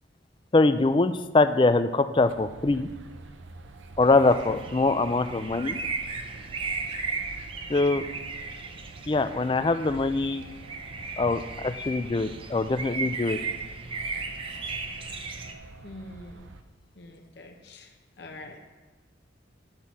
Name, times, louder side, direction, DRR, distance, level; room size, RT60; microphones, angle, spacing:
voice 1, 0.5-2.9 4.0-5.8 7.7-8.0 9.1-10.4 11.2-13.4, left 3 dB, 25° left, 11 dB, 0.3 m, -23 dB
sound 1, 2.1-16.6, right 3 dB, 75° right, 0.6 m, -47 dB
sound 2, 4.0-15.5, right 4 dB, 30° right, 0.6 m, -36 dB
voice 2, 15.8-16.5 16.9-18.6, left 1 dB, 60° left, 3 dB, 0.7 m, -45 dB
10.5 x 7.4 x 4.1 m, 1.2 s
head